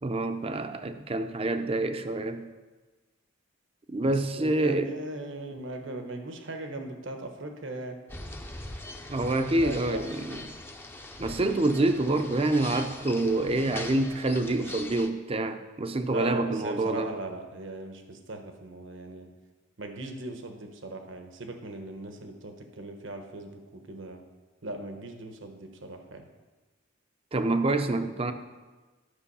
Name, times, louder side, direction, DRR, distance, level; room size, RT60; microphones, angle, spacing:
voice 1, 0.0-2.5 3.9-4.9 9.1-10.4 11.2-17.1 27.3-28.3, right 2 dB, 30° right, 8 dB, 0.6 m, -27 dB
voice 2, 4.0-8.0 9.6-10.2 16.1-19.3 19.8-24.2 24.6-26.3, right 2 dB, 70° right, 5 dB, 1.1 m, -39 dB
sound 1, 8.1-15.1, left 2 dB, 10° left, 0.6 m, -41 dB
11.5 x 6.2 x 5.5 m, 1.3 s
head